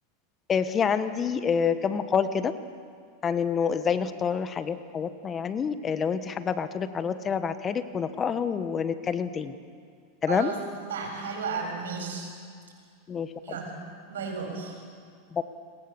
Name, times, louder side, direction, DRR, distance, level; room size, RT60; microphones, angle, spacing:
voice 1, 0.5-2.5 3.2-9.5 10.2-10.5 13.1-13.3 15.3-15.4, left 6 dB, 25° left, 11 dB, 1.4 m, -27 dB
voice 2, 10.3-10.6 10.9-12.3 13.4-13.8 14.1-14.7, right 5 dB, 85° right, 2 dB, 7.5 m, -33 dB
29.0 x 21.5 x 7.2 m, 2.2 s
hypercardioid pair, 105°, 0 cm